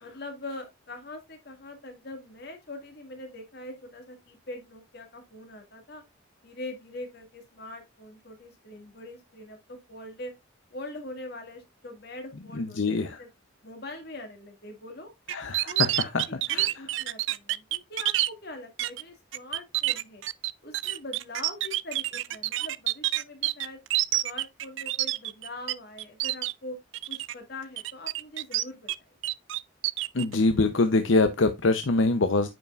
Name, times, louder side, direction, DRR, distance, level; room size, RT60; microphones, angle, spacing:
voice 1, 0.0-6.0 6.4-10.3 10.7-13.3 13.6-15.1 15.7-20.2 20.6-23.8 24.2-26.8 27.1-29.1, left 2 dB, 55° left, 2.1 m, -42 dB
voice 2, 12.5-13.2 15.3-15.9 16.1-16.7 30.1-32.5, left 3 dB, 75° left, 0.7 m, -24 dB
sound 1, 15.3-18.3 18.8-19.0 19.3-25.7 26.0-26.5 26.9-27.3 27.8-29.0 29.2-30.2, right 16 dB, 70° right, 0.4 m, -28 dB
9.3 x 5.6 x 2.5 m
head